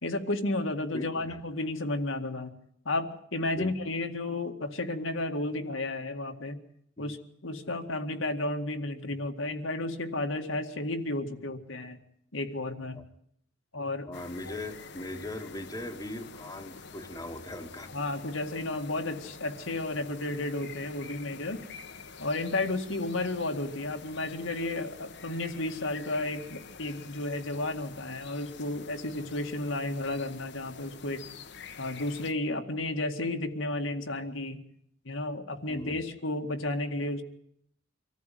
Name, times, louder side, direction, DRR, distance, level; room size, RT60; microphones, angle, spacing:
voice 1, 0.0-2.5 2.9-6.6 7.0-7.2 7.4-12.0 12.3-13.0 13.7-14.1 14.4-14.5 17.9-21.6 22.2-31.2 31.8-34.6 35.1-37.2, left 2 dB, 80° left, 4 dB, 2.1 m, -32 dB
voice 2, 0.9-1.4 3.5-3.7 7.0-7.1 12.9-13.0 14.1-17.9 35.7-36.0, left 1 dB, 20° left, 5 dB, 1.5 m, -39 dB
sound 1, 14.1-32.3, left 5 dB, 60° left, 1.3 m, -47 dB
25.5 x 14.5 x 9.3 m, 0.71 s
head